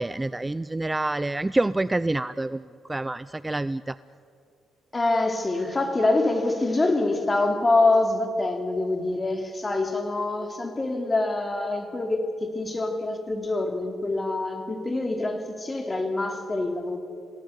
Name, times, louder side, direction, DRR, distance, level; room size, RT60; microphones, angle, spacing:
voice 1, 0.0-4.0 5.6-5.7, right 2 dB, 15° right, 16 dB, 0.5 m, -27 dB
voice 2, 4.9-17.0, left 2 dB, 25° left, 5 dB, 3.3 m, -25 dB
27.0 x 18.0 x 8.4 m, 2.5 s
cardioid pair, 90°, 0 cm